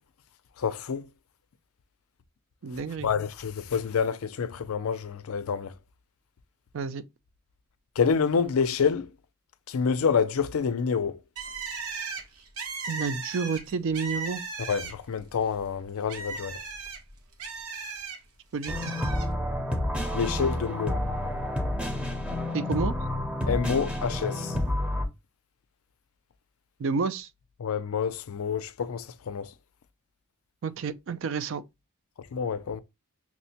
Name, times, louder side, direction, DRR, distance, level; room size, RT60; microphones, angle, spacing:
voice 1, 0.6-1.1 3.0-5.7 8.0-9.1 9.7-11.2 14.7-16.6 20.1-21.0 23.5-24.6 27.6-29.5 32.3-32.8, left 6 dB, 75° left, 0.4 m, -27 dB
voice 2, 2.6-3.1 6.7-7.0 12.9-14.4 18.5-18.9 22.5-22.9 26.8-27.3 30.6-31.6, right 5 dB, 60° right, 0.4 m, -30 dB
Bird, 11.4-15.2 15.6-18.2 18.6-19.3, right 4 dB, 75° right, 1.0 m, -37 dB
sound 1, 18.7-25.1, left 1 dB, 5° right, 0.6 m, -29 dB
5.9 x 2.1 x 2.7 m
head